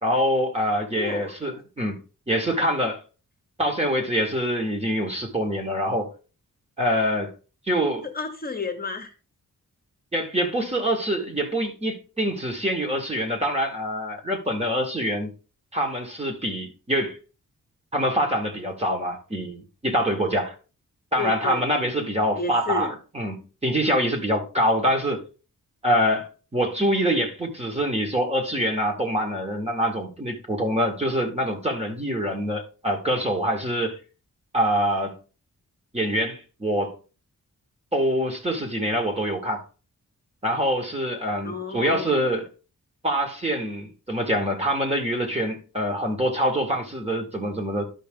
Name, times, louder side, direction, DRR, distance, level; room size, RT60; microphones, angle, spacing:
voice 1, 0.0-2.0 2.3-3.0 3.6-6.1 6.8-7.3 7.7-8.1 10.1-15.3 15.7-17.2 17.9-20.5 21.1-25.2 25.8-34.0 34.5-35.2 35.9-37.0 37.9-39.6 40.4-42.5 43.0-47.8, equal, 20° right, 1.8 m, -25 dB
voice 2, 0.9-1.3 8.0-9.1 21.2-21.6 22.4-22.9 41.4-42.1, left 4 dB, 30° left, 1.1 m, -31 dB
11.5 x 5.8 x 3.8 m
wide cardioid pair, 165°, 32 cm